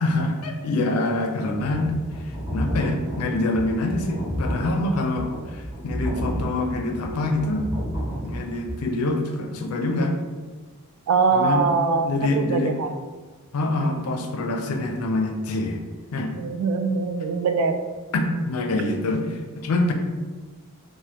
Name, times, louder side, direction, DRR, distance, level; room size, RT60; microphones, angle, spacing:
voice 1, 0.0-7.7 8.2-10.2 11.3-11.7 12.0-12.8 13.5-15.8 16.1-16.3 18.1-19.9, left 2 dB, 85° left, 4 dB, 0.4 m, -25 dB
sound 1, 1.6-8.7, equal, 20° right, 0.8 m, -31 dB
voice 2, 11.1-12.9 16.4-17.8, right 4 dB, 80° right, 7 dB, 0.3 m, -22 dB
3.2 x 2.1 x 2.8 m, 1.3 s
head